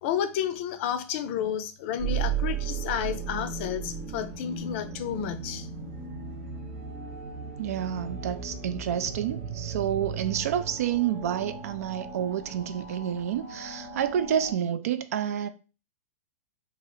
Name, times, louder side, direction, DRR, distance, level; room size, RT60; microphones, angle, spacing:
voice 1, 0.0-5.7, left 9 dB, 50° left, 0.5 m, -31 dB
sound 1, 2.0-14.5, right 6 dB, 55° right, 0.8 m, -36 dB
voice 2, 7.6-15.5, right 9 dB, 70° right, 0.4 m, -29 dB
3.0 x 2.4 x 3.1 m
hypercardioid pair, 140°, 8 cm